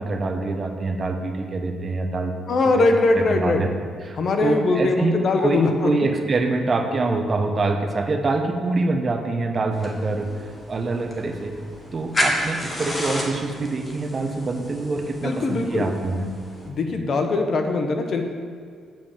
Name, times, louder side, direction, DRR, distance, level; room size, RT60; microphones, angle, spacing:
voice 1, 0.0-2.3 2.7-2.8 3.1-3.7 4.0-11.5 11.9-16.2, right 3 dB, 40° right, 4 dB, 1.1 m, -25 dB
voice 2, 2.5-3.6 4.2-5.9 15.2-15.9 16.7-18.2, left 3 dB, 55° left, 5 dB, 1.1 m, -21 dB
sound 1, 9.7-16.7, left 1 dB, 25° left, 1.9 m, -31 dB
9.2 x 5.0 x 7.3 m, 2.1 s
cardioid pair, 90°, 0 cm